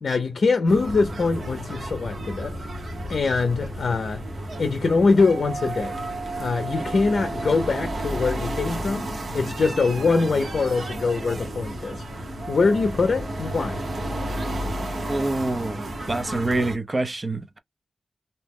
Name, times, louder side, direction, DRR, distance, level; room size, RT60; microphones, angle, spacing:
voice 1, 0.0-2.6 3.1-4.2 4.6-6.0 6.4-9.1 9.3-12.0 12.5-13.8, left 4 dB, 70° left, 0.5 m, -23 dB
sound 1, 0.7-16.8, right 1 dB, 70° right, 1.0 m, -32 dB
voice 2, 15.1-17.6, right 2 dB, 35° right, 0.6 m, -26 dB
2.7 x 2.0 x 3.5 m
wide cardioid pair, 105°, 0 cm